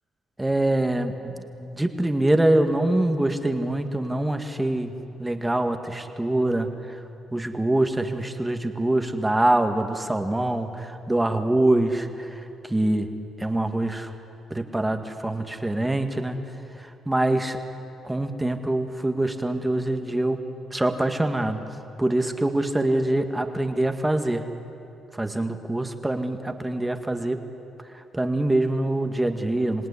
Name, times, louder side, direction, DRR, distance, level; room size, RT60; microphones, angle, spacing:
voice 1, 0.4-4.9 5.2-7.0 7.3-13.1 13.4-14.1 14.5-16.4 16.7-17.6 18.0-20.4 20.7-21.6 22.0-24.4 25.1-27.4 27.9-29.9, right 1 dB, 10° right, 7 dB, 1.9 m, -24 dB
27.0 x 18.0 x 9.9 m, 2.9 s
cardioid pair, 90°, 0 cm